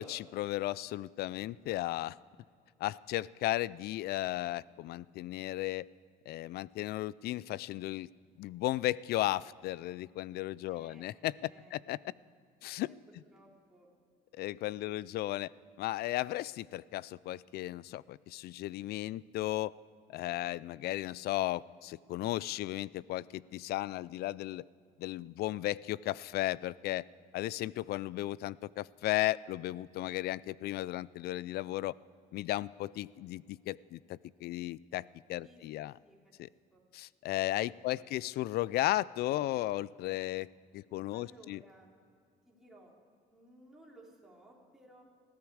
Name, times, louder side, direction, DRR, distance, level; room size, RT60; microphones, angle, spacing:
voice 1, 0.0-2.2 2.8-5.9 6.3-8.1 8.4-12.0 12.6-12.9 14.3-15.5 15.8-19.7 20.1-24.7 25.0-27.0 27.3-31.9 32.3-35.9 36.9-40.5 40.7-41.6, left 16 dB, 70° left, 22 dB, 0.4 m, -35 dB
voice 2, 10.7-11.1 11.4-11.8 12.9-13.9 14.8-15.0 20.4-20.8 35.4-36.8 37.9-38.2 41.1-41.9 42.4-42.9 43.3-45.0, right 1 dB, ahead, -4 dB, 3.7 m, -59 dB
20.0 x 14.5 x 4.9 m, 2.3 s
cardioid pair, 110°, 17 cm